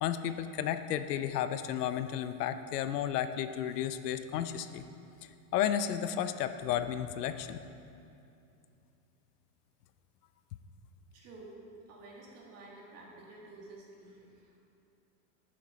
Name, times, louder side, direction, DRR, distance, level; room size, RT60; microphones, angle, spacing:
voice 1, 0.0-4.8 5.5-7.6, left 10 dB, 80° left, 11 dB, 0.7 m, -33 dB
voice 2, 11.1-11.6 11.9-14.6, right 2 dB, 30° right, -3 dB, 1.9 m, -51 dB
11.0 x 7.3 x 4.3 m, 2.6 s
supercardioid pair, 155°, 47 cm